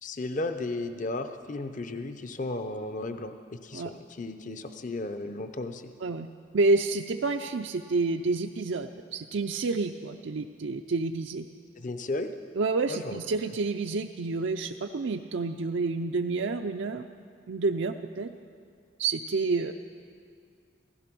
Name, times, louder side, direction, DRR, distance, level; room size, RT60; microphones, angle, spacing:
voice 1, 0.0-5.9 11.8-12.3 12.9-13.2, left 2 dB, 40° left, 8 dB, 0.6 m, -34 dB
voice 2, 6.5-11.5 12.5-17.0 17.5-18.3 19.0-19.7, right 3 dB, 75° right, 5 dB, 0.5 m, -29 dB
16.0 x 15.0 x 6.1 m, 2.2 s
head